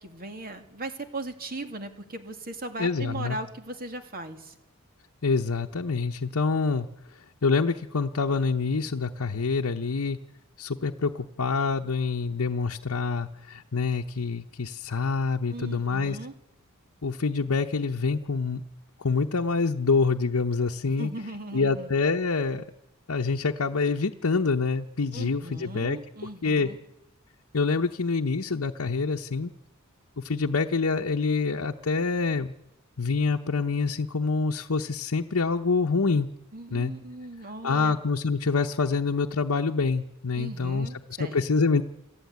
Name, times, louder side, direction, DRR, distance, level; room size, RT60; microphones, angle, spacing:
voice 1, 0.0-4.5 15.5-16.3 20.8-21.9 25.1-26.8 36.5-38.0 40.3-41.4, right 2 dB, 45° right, 6 dB, 2.5 m, -38 dB
voice 2, 2.8-3.4 5.2-6.9 7.4-10.2 10.6-16.2 17.0-18.6 19.0-21.1 21.5-22.6 23.1-26.0 26.4-26.7 27.5-29.5 30.2-32.5 33.0-36.3 36.7-36.9 37.6-40.9 41.2-41.8, left 4 dB, 70° left, 3 dB, 0.9 m, -26 dB
28.0 x 15.5 x 9.5 m, 0.93 s
head